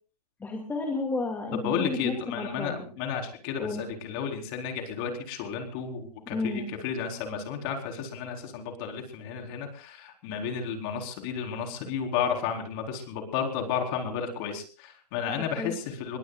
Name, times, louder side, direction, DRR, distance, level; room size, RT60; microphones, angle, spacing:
voice 1, 0.4-2.7 3.6-3.8 6.3-6.7 15.6-15.7, left 3 dB, 10° left, 2 dB, 2.3 m, -32 dB
voice 2, 1.5-16.2, left 7 dB, 35° left, 3 dB, 4.1 m, -32 dB
24.5 x 21.5 x 2.4 m, 0.38 s
hypercardioid pair, 145°, 20 cm